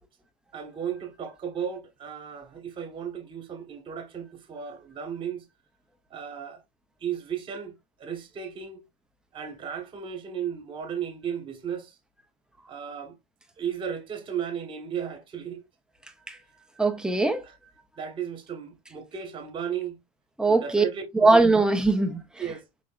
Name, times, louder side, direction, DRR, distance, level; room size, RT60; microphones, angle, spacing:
voice 1, 0.5-5.4 6.1-6.6 7.0-8.8 9.3-11.9 12.7-13.2 13.6-15.6 18.0-20.0 20.5-21.4 22.4-22.6, right 8 dB, 25° right, 1.3 m, -35 dB
voice 2, 16.8-17.5 20.4-20.8 21.1-22.2, right 3 dB, 5° right, 0.7 m, -21 dB
5.0 x 3.5 x 2.4 m
supercardioid pair, 145°, 19 cm